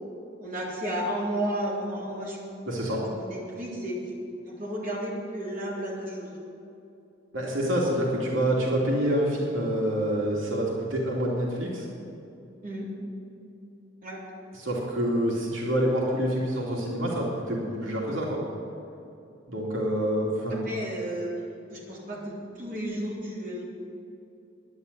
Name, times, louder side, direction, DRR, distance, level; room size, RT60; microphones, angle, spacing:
voice 1, 0.4-2.4 2.8-4.0 4.4-6.4 8.4-8.6 12.6-12.9 14.0-14.2 20.5-21.3 21.7-23.6, equal, 45° right, -5 dB, 3.7 m, -33 dB
voice 2, 2.7-3.0 7.3-11.9 14.6-18.4 19.5-20.7, equal, 90° right, -3 dB, 2.8 m, -27 dB
11.0 x 10.5 x 8.2 m, 2.7 s
head